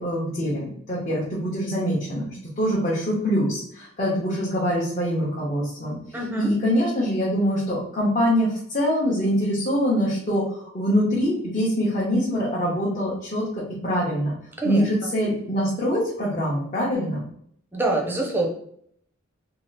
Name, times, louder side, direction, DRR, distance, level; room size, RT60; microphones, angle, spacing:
voice 1, 0.0-2.3 2.6-5.9 6.4-14.3 14.6-17.2, equal, 35° left, -7 dB, 0.7 m, -24 dB
voice 2, 6.1-6.5 14.6-14.8 17.7-18.5, right 2 dB, 10° right, 0 dB, 0.5 m, -24 dB
2.8 x 2.3 x 3.2 m, 0.66 s
head